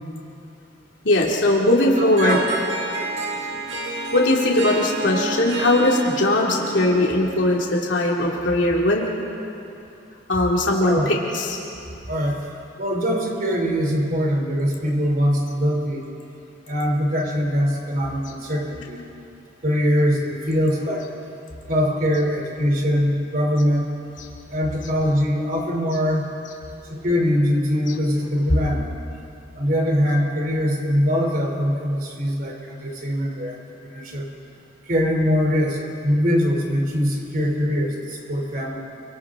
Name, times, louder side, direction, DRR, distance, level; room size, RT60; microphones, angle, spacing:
voice 1, 1.0-2.4 4.1-9.1 10.3-11.6, left 1 dB, 75° left, -2 dB, 2.5 m, -19 dB
Harp, 1.9-7.7, right 2 dB, 80° right, 1.9 m, -30 dB
voice 2, 2.0-2.4 10.8-11.1 12.1-12.4 12.8-16.0 16.7-19.0 19.6-21.1 21.7-23.9 24.5-26.2 26.9-28.9 29.5-34.3 34.9-38.8, equal, 50° right, 1 dB, 3.3 m, -22 dB
29.0 x 24.5 x 3.8 m, 2.7 s
head